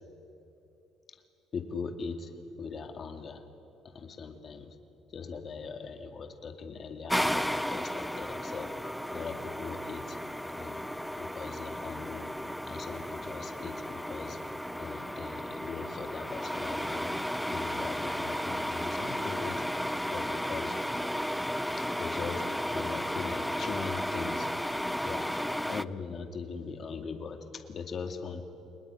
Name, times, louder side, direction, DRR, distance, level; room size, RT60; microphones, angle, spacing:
voice 1, 1.5-2.3 2.6-3.4 3.9-4.7 5.1-8.7 9.1-10.2 10.6-10.8 11.2-12.3 12.7-14.4 14.8-17.1 17.5-19.6 20.1-20.8 21.8-22.4 22.7-24.5 25.0-25.3 25.7-28.4, left 5 dB, 35° left, 6 dB, 2.3 m, -40 dB
sound 1, 7.1-25.8, equal, ahead, 0.5 m, -34 dB
30.0 x 19.5 x 9.8 m, 2.9 s
cardioid pair, 150°, 0 cm